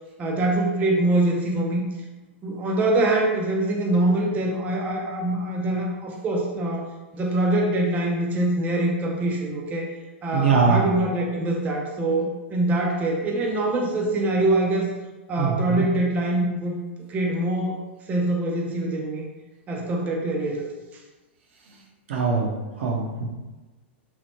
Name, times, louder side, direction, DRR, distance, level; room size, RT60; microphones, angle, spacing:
voice 1, 0.2-1.8 2.4-6.9 7.1-9.9 10.2-14.9 15.3-16.7 17.1-17.8 18.1-19.2 19.7-20.7, right 2 dB, 25° right, -1 dB, 0.4 m, -24 dB
voice 2, 10.3-10.8 15.4-15.8 22.1-23.3, right 5 dB, 70° right, 0 dB, 0.6 m, -22 dB
2.9 x 2.0 x 3.0 m, 1.2 s
hypercardioid pair, 120°, 7 cm